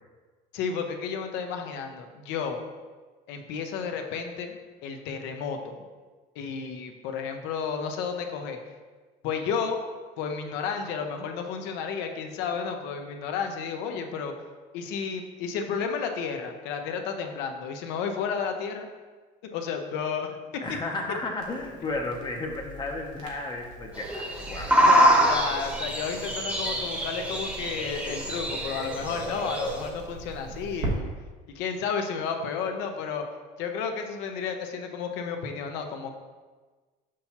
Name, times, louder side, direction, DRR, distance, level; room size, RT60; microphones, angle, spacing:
voice 1, 0.5-2.6 3.3-4.6 4.8-5.7 6.4-8.6 9.2-9.8 10.2-14.3 14.7-18.9 19.4-20.6 24.8-31.1 31.5-33.3 33.6-36.1, left 6 dB, 80° left, 4 dB, 0.7 m, -32 dB
voice 2, 20.6-24.8, left 2 dB, 25° left, 1 dB, 0.6 m, -33 dB
Crackle, 21.4-30.9, right 2 dB, 90° right, 1.3 m, -41 dB
sound 1, 23.9-29.9, equal, 10° right, 0.9 m, -25 dB
6.2 x 5.6 x 2.9 m, 1.4 s
cardioid pair, 130°, 18 cm